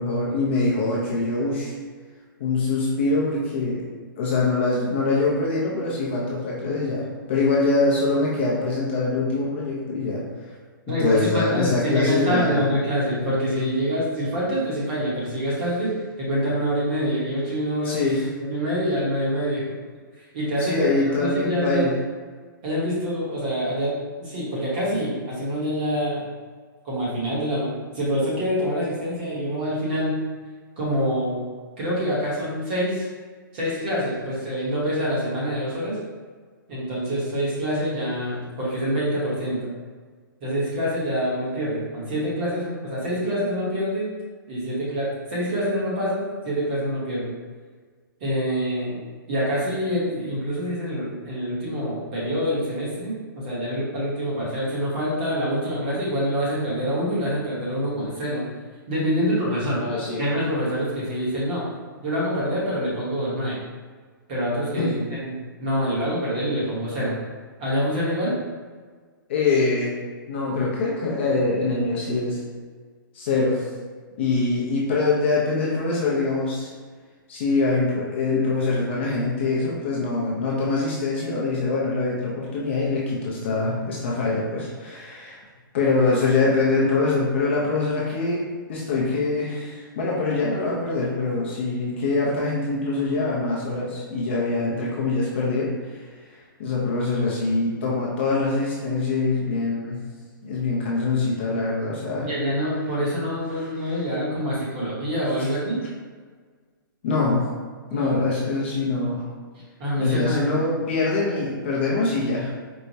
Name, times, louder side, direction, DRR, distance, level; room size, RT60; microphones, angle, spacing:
voice 1, 0.0-1.7 2.4-3.8 4.2-10.2 10.9-12.6 17.8-18.3 20.6-22.0 59.8-60.2 64.8-64.9 69.3-69.9 70.3-72.4 73.1-73.7 74.2-76.7 77.3-85.4 85.7-96.0 96.6-100.0 100.4-102.3 103.5-103.7 107.0-107.5 107.9-109.3 110.0-112.5, left 3 dB, 30° left, -5 dB, 0.5 m, -24 dB
voice 2, 10.9-19.7 20.2-20.9 21.2-21.9 22.6-26.3 26.8-30.2 30.8-31.4 31.8-33.1 33.5-36.0 36.7-39.7 40.4-44.1 44.5-47.3 48.2-49.0 49.3-58.5 58.9-59.8 60.2-61.7 62.0-63.6 64.3-67.2 67.6-68.4 102.2-105.8 107.9-108.1 109.8-110.5, equal, 25° right, -7 dB, 0.9 m, -26 dB
4.5 x 2.0 x 2.7 m, 1.6 s
hypercardioid pair, 175°, 12 cm